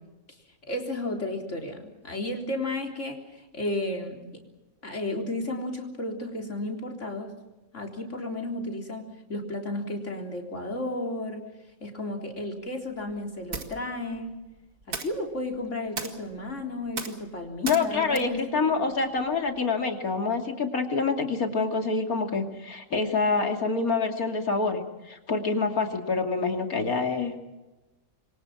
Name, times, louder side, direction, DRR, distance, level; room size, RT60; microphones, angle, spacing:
voice 1, 0.6-4.5 4.8-7.3 7.7-11.4 11.8-14.4 14.9-18.9, left 1 dB, 55° left, 2 dB, 4.1 m, -33 dB
sound 1, 12.3-19.6, right 4 dB, 70° right, 2.5 m, -41 dB
voice 2, 17.6-27.4, left 4 dB, 80° left, 5 dB, 3.2 m, -26 dB
27.5 x 23.0 x 6.0 m, 1.1 s
omnidirectional pair, 1.5 m